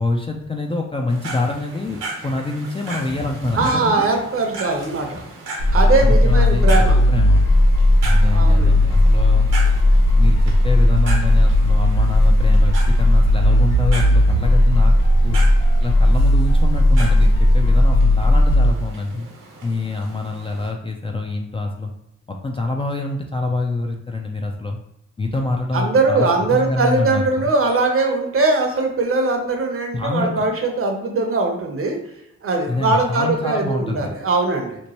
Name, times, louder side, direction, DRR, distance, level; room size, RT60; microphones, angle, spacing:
voice 1, 0.0-4.0 6.0-7.4 8.0-9.5 10.2-14.9 15.2-15.4 15.8-19.3 19.6-21.9 22.3-24.8 25.2-27.5 29.9-30.4 32.7-34.1, left 3 dB, 20° left, 1 dB, 0.3 m, -25 dB
sound 1, 1.1-20.7, right 2 dB, 75° right, 1.0 m, -36 dB
voice 2, 3.6-5.2 5.7-7.0 8.2-8.7 25.7-32.0 32.4-34.8, right 3 dB, 45° right, 3 dB, 0.7 m, -20 dB
sound 2, 5.6-18.7, left 1 dB, 85° left, 0.9 m, -15 dB
3.0 x 2.1 x 2.8 m, 0.81 s
supercardioid pair, 50°, 31 cm